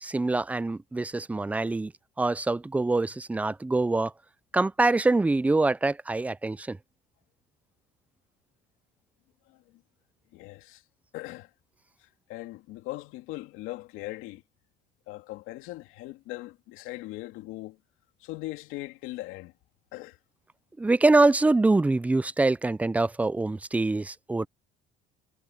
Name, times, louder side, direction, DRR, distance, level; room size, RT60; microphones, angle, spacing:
voice 1, 0.0-1.9 2.2-4.1 4.5-6.8 20.8-24.5, right 2 dB, 5° right, 0.4 m, -24 dB
voice 2, 9.5-9.8 10.3-10.8 11.1-11.5 12.0-14.4 15.1-17.8 18.2-19.5 19.9-20.2, left 18 dB, 80° left, 2.6 m, -40 dB
cardioid pair, 130°, 21 cm